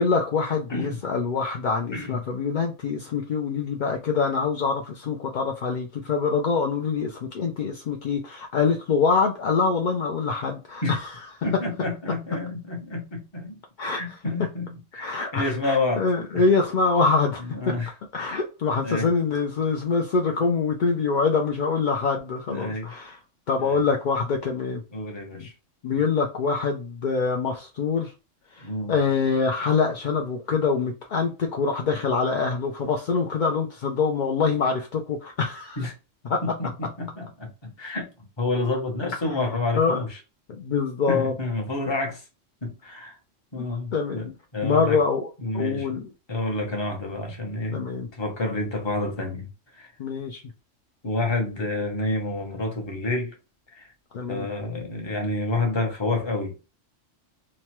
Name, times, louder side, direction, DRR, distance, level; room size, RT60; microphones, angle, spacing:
voice 1, 0.0-11.1 13.8-14.2 15.0-17.7 18.1-23.2 23.5-24.8 25.3-25.5 25.8-28.1 28.5-35.8 36.2-36.4 39.8-40.0 40.5-41.3 43.6-43.7 43.9-44.2 44.6-46.1 47.7-48.1 50.0-50.4 54.1-54.5, left 5 dB, 65° left, 0.4 m, -25 dB
voice 2, 0.7-1.0 1.9-2.2 10.8-11.0 11.4-13.6 13.9-16.1 16.3-16.4 17.5-17.9 18.8-19.1 22.5-22.9 23.6-23.8 24.9-25.5 28.6-28.9 35.8-35.9 36.4-38.1 38.4-40.2 41.1-42.2 42.6-43.2 43.5-45.0 45.4-46.0 46.3-47.8 48.1-49.5 49.7-49.9 51.0-53.4 53.8-53.9 54.3-56.5, left 2 dB, 25° left, 0.8 m, -29 dB
3.0 x 2.2 x 2.9 m
omnidirectional pair, 1.3 m